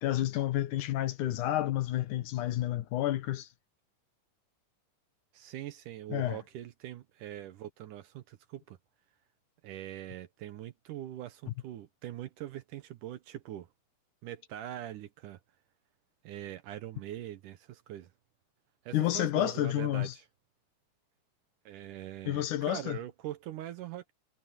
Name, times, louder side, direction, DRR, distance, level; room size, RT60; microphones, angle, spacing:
voice 1, 0.0-3.5 6.1-6.4 18.9-20.1 22.3-23.0, left 14 dB, 75° left, 2.5 m, -30 dB
voice 2, 5.3-8.8 9.6-13.7 14.2-15.4 16.2-18.1 18.9-20.3 21.7-24.1, right 13 dB, 75° right, 2.4 m, -42 dB
omnidirectional pair, 3.8 m